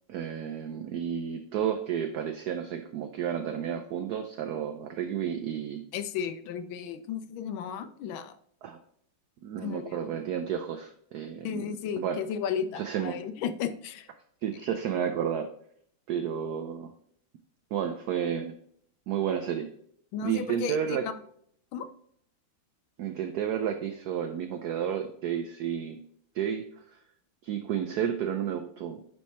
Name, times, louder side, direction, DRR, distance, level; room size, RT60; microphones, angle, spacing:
voice 1, 0.1-5.9 8.6-8.8 9.4-12.2 12.7-13.2 14.4-15.5 16.1-16.9 17.7-18.5 19.1-19.7 20.2-21.1 23.0-26.0 26.3-27.0 27.4-29.0, right 8 dB, 80° right, 7 dB, 0.8 m, -31 dB
voice 2, 5.9-8.3 9.6-10.0 11.4-14.1 20.1-21.2 21.7-21.9, left 8 dB, 75° left, 11 dB, 1.3 m, -34 dB
9.5 x 3.3 x 4.2 m, 0.66 s
omnidirectional pair, 2.3 m